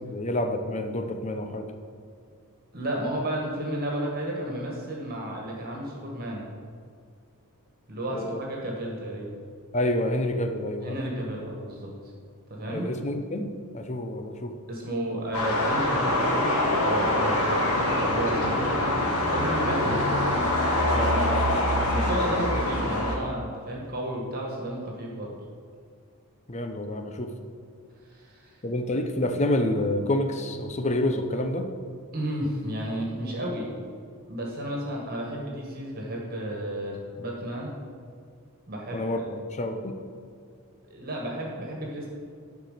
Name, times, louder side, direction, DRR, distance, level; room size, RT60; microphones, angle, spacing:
voice 1, 0.1-1.7 8.1-8.4 9.7-10.9 12.7-14.5 20.9-21.2 22.2-22.4 26.5-27.3 28.6-31.7 38.9-40.0, left 1 dB, 30° left, 6 dB, 0.8 m, -28 dB
voice 2, 2.7-6.5 7.9-9.4 10.8-11.9 12.5-12.9 14.7-17.6 18.0-18.9 19.3-20.1 21.9-25.4 28.0-28.6 32.1-33.7 34.3-37.7 38.7-39.1 40.9-42.1, right 1 dB, 45° right, -2 dB, 1.8 m, -32 dB
sound 1, 15.3-23.1, left 1 dB, 80° left, 2.0 m, -24 dB
11.5 x 4.7 x 6.7 m, 2.2 s
head